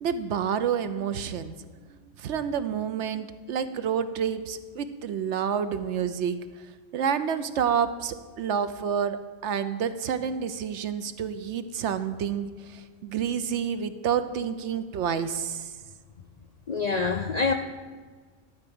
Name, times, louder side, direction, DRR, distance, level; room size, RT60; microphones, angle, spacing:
voice 1, 0.0-1.5 2.2-6.4 6.9-15.7, right 7 dB, 70° right, 11 dB, 0.9 m, -29 dB
voice 2, 16.7-17.5, left 4 dB, 55° left, 5 dB, 0.4 m, -25 dB
12.5 x 4.7 x 7.9 m, 1.5 s
omnidirectional pair, 1.3 m